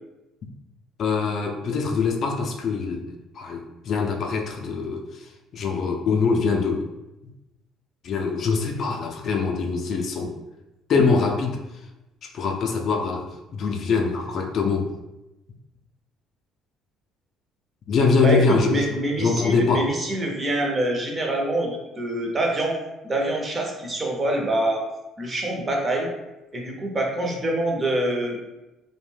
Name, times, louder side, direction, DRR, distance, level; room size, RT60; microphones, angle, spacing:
voice 1, 1.0-3.0 3.3-6.9 8.0-10.4 10.9-11.6 12.3-14.9 17.9-18.9 19.2-19.9, left 4 dB, 50° left, 2 dB, 0.3 m, -23 dB
voice 2, 18.2-22.8 23.0-24.8 25.2-26.1 26.5-28.4, right 1 dB, 25° right, 0 dB, 0.6 m, -25 dB
2.5 x 2.1 x 3.2 m, 0.99 s
cardioid pair, 115°, 0 cm